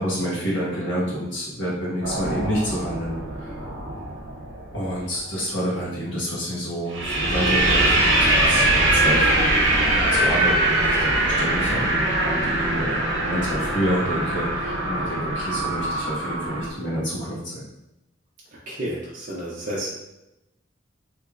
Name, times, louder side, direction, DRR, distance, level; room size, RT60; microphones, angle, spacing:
voice 1, 0.0-3.5 4.7-9.5 9.9-17.7, equal, 65° left, -7 dB, 1.4 m, -28 dB
sound 1, 2.0-4.9 6.9-16.7, right 1 dB, 75° right, 0.7 m, -22 dB
voice 2, 18.7-19.9, right 1 dB, 40° right, -6 dB, 0.5 m, -31 dB
3.3 x 3.0 x 2.4 m, 0.92 s
head